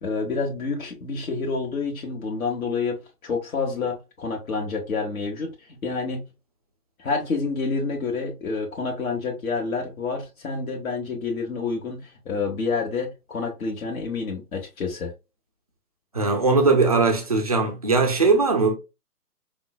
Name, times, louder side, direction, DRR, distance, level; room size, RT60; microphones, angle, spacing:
voice 1, 0.0-6.3 7.0-15.1, left 4 dB, 65° left, 1.1 m, -28 dB
voice 2, 16.1-18.7, right 3 dB, 25° right, 0.4 m, -20 dB
5.4 x 2.1 x 2.2 m
figure-of-eight pair, 135°, 47 cm